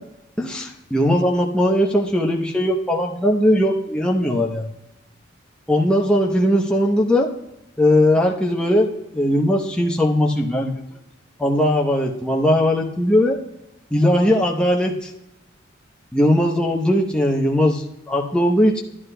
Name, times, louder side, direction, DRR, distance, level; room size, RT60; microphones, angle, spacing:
voice 1, 0.4-4.7 5.7-7.3 7.8-10.8 11.4-13.4 13.9-15.1 16.1-18.8, left 1 dB, 5° left, -1 dB, 0.7 m, -19 dB
12.0 x 11.0 x 2.2 m, 0.90 s
head